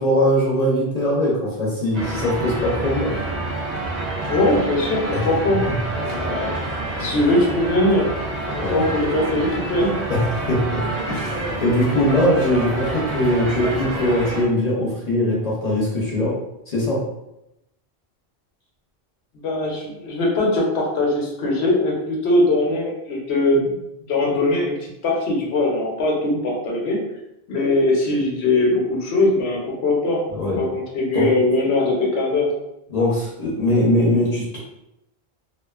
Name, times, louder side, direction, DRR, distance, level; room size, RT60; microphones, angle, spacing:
voice 1, 0.0-3.2 5.1-5.2 6.0-6.3 7.0-7.1 8.6-8.9 10.1-10.8 11.1-16.4 16.7-17.0 30.3-30.6 31.1-31.3 32.9-34.6, left 1 dB, 45° left, -6 dB, 0.6 m, -21 dB
sound 1, 1.9-14.5, right 2 dB, 50° right, 0.6 m, -28 dB
sound 2, 2.1-8.5 8.8-8.9, right 1 dB, 10° left, 0.3 m, -36 dB
voice 2, 4.3-5.7 5.9-6.6 7.0-8.1 8.5-10.0 19.3-23.8 24.1-27.0 27.5-30.3 30.6-32.5, left 2 dB, 85° left, -2 dB, 1.0 m, -21 dB
2.4 x 2.3 x 2.3 m, 0.87 s
omnidirectional pair, 1.1 m